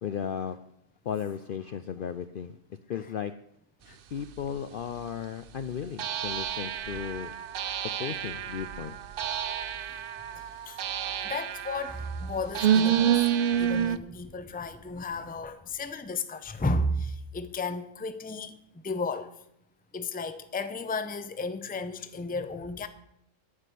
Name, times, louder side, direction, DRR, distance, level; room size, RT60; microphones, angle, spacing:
voice 1, 0.0-0.6 1.0-2.6 2.9-3.3 4.1-7.3 8.0-9.0, left 8 dB, 60° left, 0.6 m, -35 dB
sound 1, 4.4-4.5 6.0-14.0, right 9 dB, 60° right, 0.6 m, -29 dB
voice 2, 10.3-10.8 11.2-13.3 13.6-18.6 18.8-19.3 19.9-22.9, left 2 dB, 10° left, 0.5 m, -33 dB
10.0 x 9.2 x 6.9 m
omnidirectional pair, 1.4 m